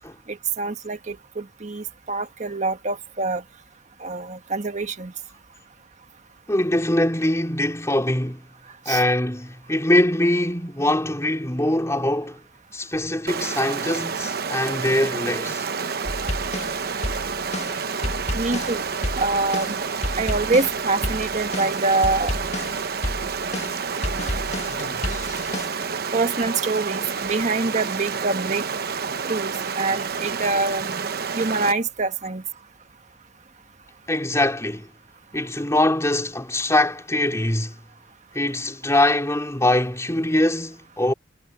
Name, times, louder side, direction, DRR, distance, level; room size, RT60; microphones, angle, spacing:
voice 1, 0.3-3.4 4.0-5.1 8.9-9.0 18.3-18.8 19.2-19.8 20.2-22.3 26.1-28.7 29.2-31.1 31.3-32.4, right 3 dB, 40° right, 1.5 m, -25 dB
voice 2, 6.5-8.4 8.9-12.4 12.7-15.6 34.1-34.9 35.3-37.7 38.3-41.1, left 1 dB, 15° left, 4.3 m, -22 dB
Stream, 13.3-31.7, right 5 dB, 60° right, 1.0 m, -29 dB
sound 1, 16.0-25.7, left 1 dB, 40° left, 1.7 m, -31 dB
head